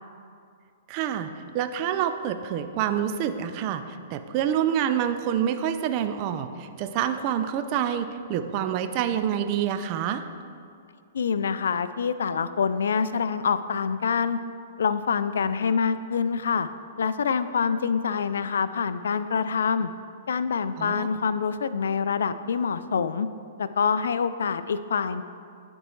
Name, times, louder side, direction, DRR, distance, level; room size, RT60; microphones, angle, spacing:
voice 1, 0.9-10.2 20.8-21.1, right 9 dB, 40° right, 9 dB, 0.4 m, -27 dB
voice 2, 11.1-14.4 14.8-16.7 17.0-19.9 20.3-23.3 23.6-25.2, left 6 dB, 80° left, 13 dB, 0.3 m, -26 dB
10.5 x 4.4 x 3.1 m, 2.3 s
hypercardioid pair, 130°, 0 cm